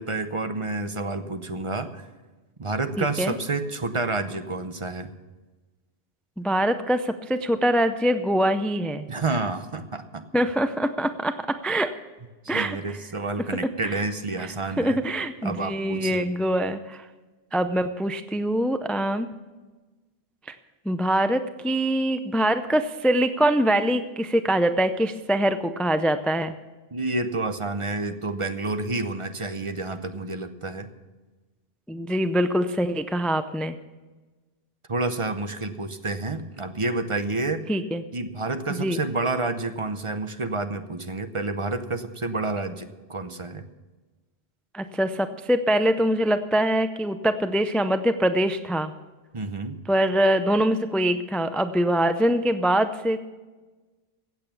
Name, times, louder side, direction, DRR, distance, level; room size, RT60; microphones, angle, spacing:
voice 1, 0.0-2.0 2.6-5.1 9.1-10.2 12.4-15.0 15.4-16.3 26.9-30.9 34.9-37.6 38.1-43.6 49.3-49.8, right 2 dB, 35° right, 9 dB, 0.7 m, -29 dB
voice 2, 3.0-3.4 6.4-9.1 10.3-11.9 12.5-13.0 13.4-14.0 14.4-14.5 14.8-17.1 17.5-19.3 20.5-20.6 20.9-26.5 31.9-33.8 37.7-38.0 38.8-39.0 44.7-48.9 49.9-53.2, right 1 dB, ahead, 10 dB, 0.3 m, -24 dB
15.5 x 8.2 x 7.0 m, 1.2 s
omnidirectional pair, 1.1 m